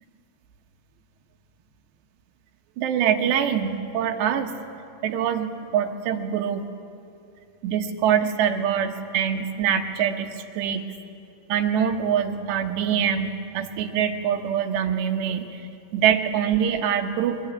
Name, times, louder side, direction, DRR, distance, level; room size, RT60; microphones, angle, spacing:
voice 1, 2.8-4.5 5.0-6.7 7.6-10.8 11.5-17.4, right 8 dB, 75° right, 4 dB, 3.4 m, -24 dB
22.5 x 21.0 x 9.6 m, 2.6 s
omnidirectional pair, 5.1 m